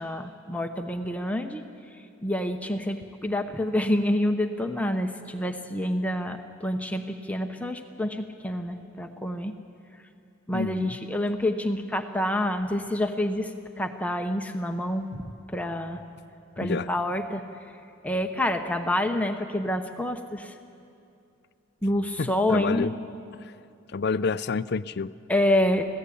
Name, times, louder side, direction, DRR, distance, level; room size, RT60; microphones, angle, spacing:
voice 1, 0.0-1.6 2.2-9.5 10.5-13.5 13.8-16.0 16.6-17.4 18.0-20.5 21.8-22.9 25.3-25.8, left 1 dB, 5° left, 5 dB, 0.8 m, -27 dB
voice 2, 10.5-11.0 16.6-16.9 22.2-22.9 23.4-23.5 23.9-25.1, left 4 dB, 50° left, 15 dB, 0.5 m, -29 dB
26.5 x 16.5 x 8.5 m, 2.6 s
head